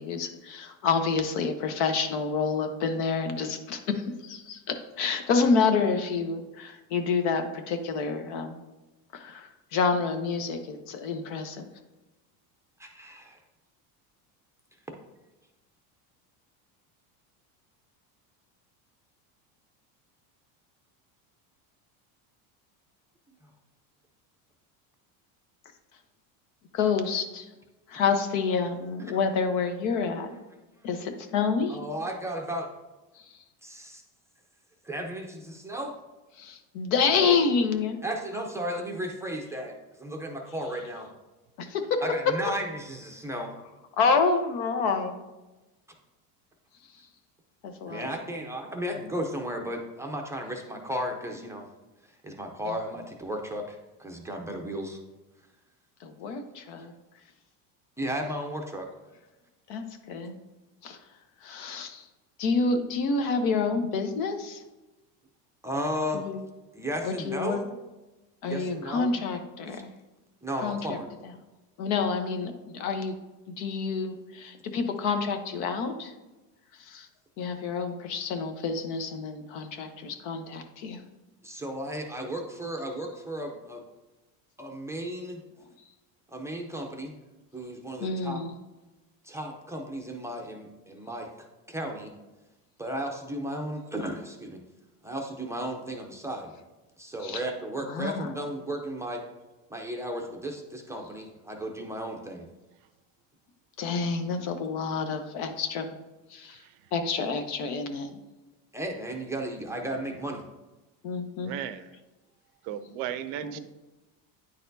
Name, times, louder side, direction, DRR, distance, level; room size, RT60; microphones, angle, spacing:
voice 1, 0.0-3.8 4.2-4.6 5.0-8.6 9.1-11.7 26.7-27.5 27.9-30.3 30.8-31.8 36.4-38.0 41.6-42.0 44.0-45.2 47.6-48.0 56.0-56.9 59.7-60.3 60.8-61.0 61.4-62.0 62.4-64.6 66.1-66.4 67.0-67.6 68.4-69.9 70.6-71.0 71.8-73.1 73.6-76.1 76.8-77.1 77.4-81.0 88.0-88.5 97.2-97.4 97.8-98.3 103.8-105.9 106.3-106.6 106.9-108.2 111.0-111.6 113.4-113.6, left 5 dB, 70° left, 7 dB, 1.0 m, -28 dB
voice 2, 12.8-13.4 14.9-15.0 28.1-28.2 31.7-32.7 33.6-34.0 34.8-35.9 38.0-41.1 42.0-43.5 47.0-47.1 47.9-51.7 52.2-55.0 58.0-58.9 65.6-66.2 66.7-67.7 68.5-69.2 69.7-69.8 70.4-71.1 81.4-83.8 84.6-85.4 86.3-87.2 87.5-88.4 89.2-91.3 91.7-92.1 92.8-94.6 95.0-96.5 97.0-99.2 99.7-102.5 108.7-110.4, equal, 5° right, 1 dB, 0.5 m, -34 dB
voice 3, 106.5-106.9 111.4-112.0 112.6-113.6, right 10 dB, 55° right, 12 dB, 0.5 m, -36 dB
9.7 x 4.2 x 2.7 m, 1.1 s
supercardioid pair, 130°, 45 cm